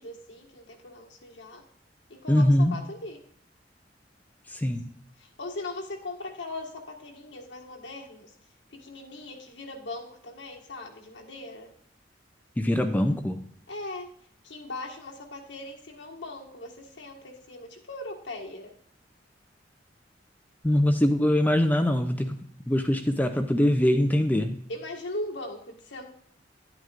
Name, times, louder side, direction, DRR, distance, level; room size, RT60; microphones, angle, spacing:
voice 1, 0.0-1.6 2.1-3.2 5.2-8.3 8.7-11.7 13.7-14.1 14.4-18.7 24.7-26.1, left 2 dB, 75° left, 0 dB, 1.6 m, -39 dB
voice 2, 2.3-2.7 4.5-4.9 12.6-13.4 20.6-22.3 22.7-24.6, left 1 dB, 10° left, 7 dB, 0.4 m, -23 dB
10.5 x 8.9 x 2.5 m, 0.63 s
head